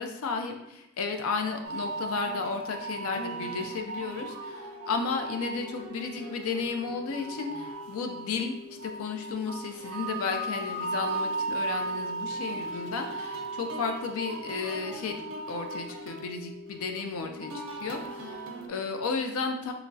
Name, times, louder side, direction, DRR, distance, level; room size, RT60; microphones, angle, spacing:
voice 1, 0.0-8.5 8.8-15.2 15.5-19.7, left 4 dB, 70° left, 5 dB, 0.4 m, -33 dB
sound 1, 1.6-18.7, right 3 dB, 70° right, 0.5 m, -37 dB
sound 2, 4.1-18.5, left 4 dB, 55° left, 0.9 m, -48 dB
5.6 x 2.0 x 2.6 m, 0.86 s
head